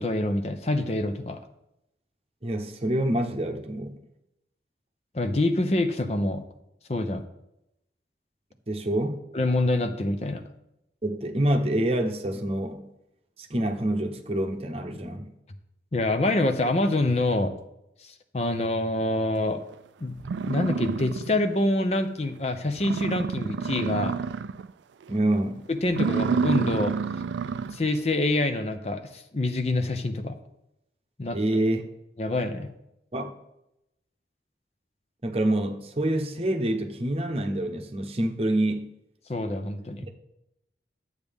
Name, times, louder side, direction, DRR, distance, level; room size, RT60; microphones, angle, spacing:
voice 1, 0.0-1.4 5.1-6.4 6.9-7.2 9.3-10.4 15.9-17.5 18.0-19.6 20.0-20.2 20.4-24.1 25.7-26.9 27.7-30.3 31.2-31.4 32.2-32.7 39.3-40.0, left 2 dB, 35° left, 0.6 m, -26 dB
voice 2, 2.4-4.0 8.7-9.2 11.0-12.9 13.4-15.3 25.1-25.7 31.3-31.8 33.1-33.3 35.2-38.9 40.0-40.1, right 1 dB, 35° right, 0.8 m, -27 dB
sound 1, 19.7-19.8 20.2-21.6 22.0-22.1 22.5-22.6 22.8-24.7 25.0-25.4 25.8-27.9, right 5 dB, 90° right, 0.4 m, -28 dB
12.0 x 8.1 x 3.5 m
head